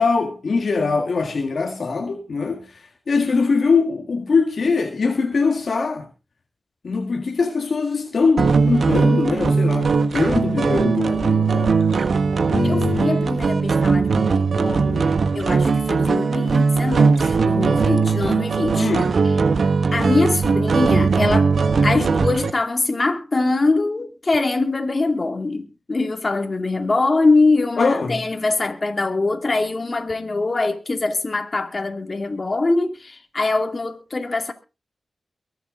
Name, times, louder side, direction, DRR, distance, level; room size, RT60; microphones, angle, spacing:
voice 1, 0.0-6.1 6.8-11.8 12.5-13.3 18.8-19.1 27.8-28.2, left 4 dB, 70° left, 1.8 m, -22 dB
Without a Care loop, 8.4-22.5, right 4 dB, 75° right, 1.3 m, -19 dB
voice 2, 12.6-18.9 19.9-21.5 21.8-34.5, left 3 dB, 45° left, 2.5 m, -23 dB
23.0 x 8.1 x 3.8 m
cardioid pair, 45°, 0 cm